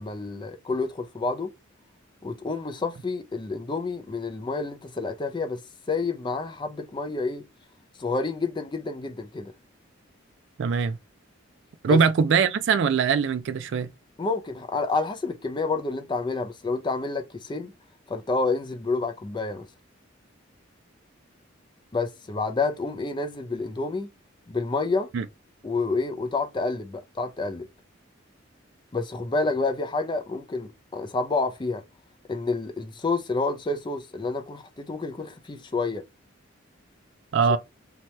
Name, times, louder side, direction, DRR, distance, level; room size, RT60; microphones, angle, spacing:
voice 1, 0.0-1.5 2.2-5.6 5.9-7.4 8.0-9.5 11.8-12.0 14.2-17.7 18.1-19.7 21.9-24.1 24.5-25.1 25.6-27.7 28.9-31.8 32.3-36.0 37.5-37.6, left 3 dB, 25° left, 0.4 m, -29 dB
voice 2, 10.6-11.0 11.8-13.9 25.1-25.2 37.3-37.6, right 6 dB, 60° right, 0.3 m, -22 dB
2.8 x 2.2 x 2.9 m
head